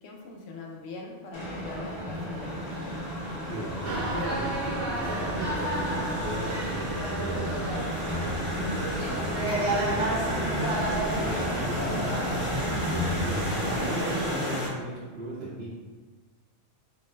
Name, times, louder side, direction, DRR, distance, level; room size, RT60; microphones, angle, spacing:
voice 1, 0.0-3.1, left 3 dB, 65° left, -2 dB, 0.8 m, -42 dB
sound 1, 1.3-14.4, equal, 25° left, 0.9 m, -36 dB
sound 2, 2.4-14.7, equal, 10° right, 0.8 m, -33 dB
voice 2, 3.5-12.0 12.6-13.4 13.7-15.7, right 2 dB, 60° right, -9 dB, 1.2 m, -37 dB
sound 3, 3.9-13.9, right 1 dB, 85° right, 1.4 m, -32 dB
4.5 x 2.0 x 3.1 m, 1.4 s
omnidirectional pair, 1.2 m